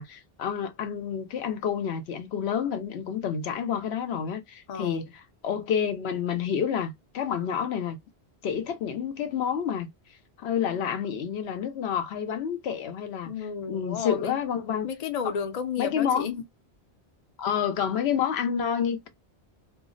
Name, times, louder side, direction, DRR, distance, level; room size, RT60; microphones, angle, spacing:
voice 1, 0.0-5.1 5.4-8.0 8.4-9.9 10.4-13.3 13.7-14.9 15.8-16.4 17.4-19.1, left 8 dB, 75° left, 0.8 m, -29 dB
voice 2, 4.7-5.0 13.3-14.4 14.8-16.4, left 7 dB, 45° left, 0.6 m, -32 dB
2.2 x 2.0 x 3.7 m
omnidirectional pair, 1.1 m